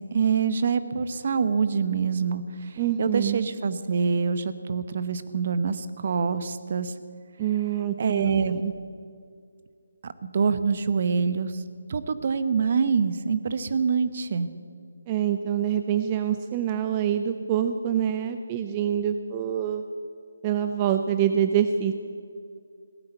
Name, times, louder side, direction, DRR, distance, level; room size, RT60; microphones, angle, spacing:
voice 1, 0.0-6.9 8.0-8.7 10.0-11.6 11.9-14.5, right 5 dB, 45° right, 12 dB, 0.9 m, -25 dB
voice 2, 2.8-3.4 7.4-8.6 15.1-19.8 20.4-21.9, right 9 dB, 25° right, 8 dB, 0.5 m, -25 dB
17.0 x 9.9 x 7.9 m, 2.3 s
figure-of-eight pair, 160°, 0 cm